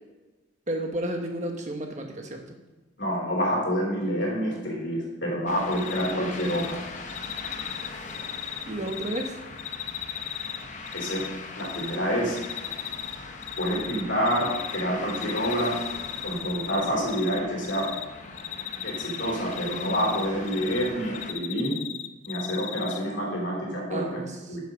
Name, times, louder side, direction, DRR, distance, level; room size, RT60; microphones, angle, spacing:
voice 1, 0.7-2.4 8.6-9.4 23.9-24.6, right 1 dB, 35° right, 3 dB, 1.2 m, -32 dB
voice 2, 3.0-6.8 10.9-11.2 11.6-12.4 13.6-15.8 16.2-17.9 18.8-21.8 22.2-24.2 24.5-24.6, equal, 70° left, -3 dB, 3.2 m, -27 dB
sound 1, 5.5-21.3, left 3 dB, 40° left, 0.9 m, -40 dB
Cricket, 5.7-6.1 6.4-6.7 7.1-9.3 9.6-11.3 11.6-12.0 12.4-13.2 13.4-14.8 15.1-17.4 17.6-18.0 18.4-20.9 21.1-23.0, left 12 dB, 90° left, 0.5 m, -35 dB
9.1 x 7.0 x 5.2 m, 1.1 s
head